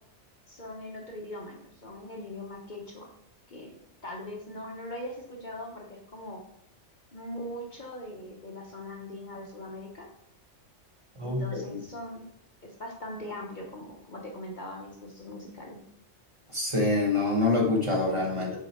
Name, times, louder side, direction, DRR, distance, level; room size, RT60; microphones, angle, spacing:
voice 1, 0.5-3.1 3.5-3.7 4.0-6.4 7.1-10.1 11.2-12.2 12.6-15.8, left 1 dB, 45° left, 1 dB, 1.0 m, -41 dB
voice 2, 16.5-18.6, left 2 dB, 25° right, -1 dB, 1.1 m, -25 dB
6.4 x 4.1 x 4.2 m, 0.73 s
omnidirectional pair, 1.2 m